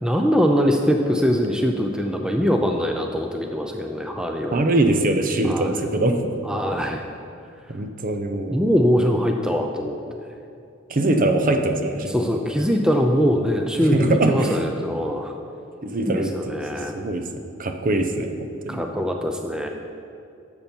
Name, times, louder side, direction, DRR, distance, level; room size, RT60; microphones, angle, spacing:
voice 1, 0.0-4.6 5.4-5.8 6.4-7.0 8.5-9.9 12.1-15.3 16.1-16.9 18.7-19.7, equal, 5° right, 3 dB, 0.5 m, -22 dB
voice 2, 4.5-6.2 7.7-8.6 10.9-12.1 13.8-14.6 15.8-17.3 17.6-18.3 18.6-18.8, right 2 dB, 45° right, 5 dB, 0.7 m, -22 dB
12.0 x 7.1 x 4.4 m, 2.6 s
head